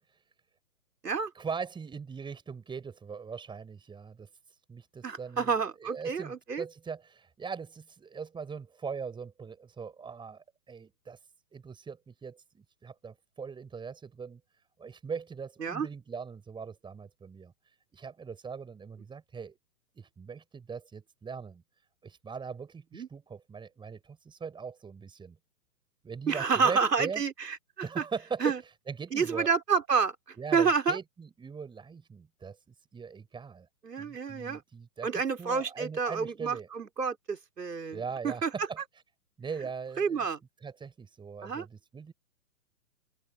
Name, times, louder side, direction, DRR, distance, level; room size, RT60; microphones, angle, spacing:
voice 1, 1.3-4.3 4.7-5.5 5.8-11.2 11.5-14.4 14.8-17.5 17.9-19.6 19.9-21.6 22.0-25.4 26.0-27.2 27.8-28.6 28.9-29.5 30.4-33.7 34.0-35.1 35.4-36.7 37.9-38.8 39.4-40.2 40.6-42.1, right 5 dB, 10° right, 6.8 m, -40 dB
voice 2, 5.0-6.6 15.6-15.9 22.9-23.1 26.3-27.6 28.0-28.1 28.4-28.6 29.1-31.0 33.8-34.6 35.0-38.5 40.0-40.4 41.4-41.7, right 5 dB, 80° right, 3.3 m, -29 dB
figure-of-eight pair, 130°, 48 cm